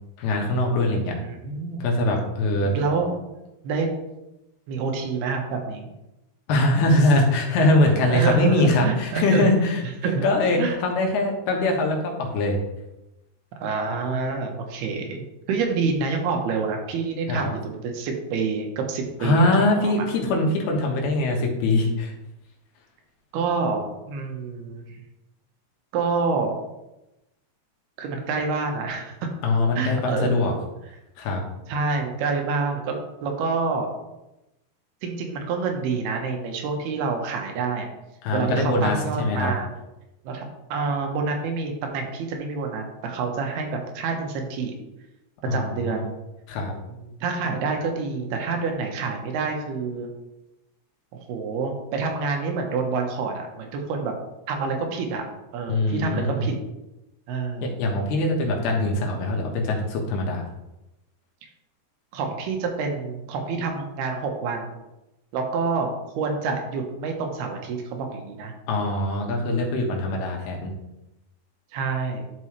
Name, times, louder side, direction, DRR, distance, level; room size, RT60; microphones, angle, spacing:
voice 1, 0.2-1.1 1.8-2.8 6.5-9.8 10.2-12.6 17.3-17.5 19.2-22.1 29.4-30.5 31.2-31.4 38.2-39.5 45.5-46.0 46.5-46.8 55.7-56.5 57.6-60.5 68.7-70.7, left 2 dB, 90° left, 0 dB, 3.3 m, -22 dB
voice 2, 0.9-1.9 2.6-3.2 3.6-3.9 4.7-5.9 8.1-9.5 10.0-10.3 10.6-10.8 13.6-15.2 15.5-19.9 23.3-25.0 25.9-26.6 28.0-29.3 29.8-30.5 31.7-33.9 35.0-37.9 38.3-39.7 40.2-44.8 45.5-46.1 46.9-50.1 51.1-54.1 54.5-55.3 55.5-56.6 57.3-57.7 62.1-64.7 65.3-68.5 71.7-72.2, right 4 dB, 90° right, 3 dB, 3.1 m, -27 dB
11.5 x 5.5 x 3.2 m, 0.95 s
omnidirectional pair, 4.4 m